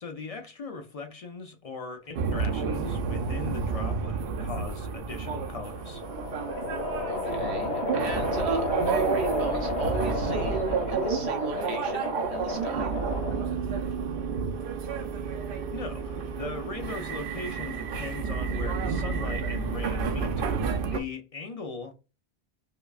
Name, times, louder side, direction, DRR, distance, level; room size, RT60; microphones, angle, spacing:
voice 1, 0.0-6.0 15.7-20.5 20.8-21.9, left 4 dB, 55° left, 0.4 m, -39 dB
sound 1, 2.1-21.0, right 5 dB, 60° right, 0.7 m, -30 dB
sound 2, 5.6-13.7, left 3 dB, 80° left, 1.3 m, -32 dB
voice 2, 7.1-12.9, right 4 dB, 75° right, 1.1 m, -36 dB
5.0 x 2.2 x 2.3 m
omnidirectional pair, 1.1 m